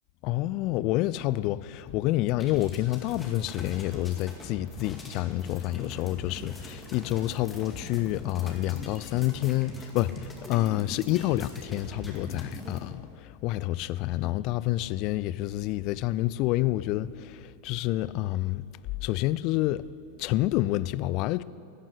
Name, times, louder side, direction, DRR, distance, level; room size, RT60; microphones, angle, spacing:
voice 1, 0.2-10.1 10.5-13.0 13.4-17.4 17.6-18.6 19.0-19.9 20.2-21.4, left 16 dB, 40° left, 0.4 m, -28 dB
sound 1, 2.4-12.8, left 1 dB, 10° left, 2.2 m, -42 dB
13.5 x 9.3 x 9.9 m
figure-of-eight pair, 90°, 0 cm